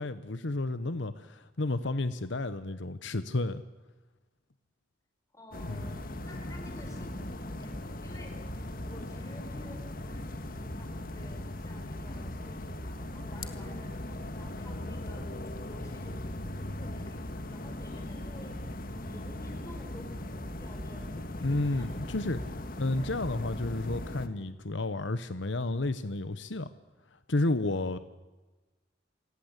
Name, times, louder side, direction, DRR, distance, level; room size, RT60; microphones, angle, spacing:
voice 1, 0.0-3.6 5.6-5.8 21.4-22.4 22.8-26.7 27.3-28.0, left 2 dB, 75° left, 12 dB, 1.1 m, -31 dB
voice 2, 5.3-13.9 14.4-22.5 22.9-23.2, left 1 dB, 15° left, 2 dB, 5.7 m, -51 dB
sound 1, 5.5-24.3, left 1 dB, 50° left, 1.7 m, -39 dB
28.5 x 18.0 x 8.2 m, 1.2 s
head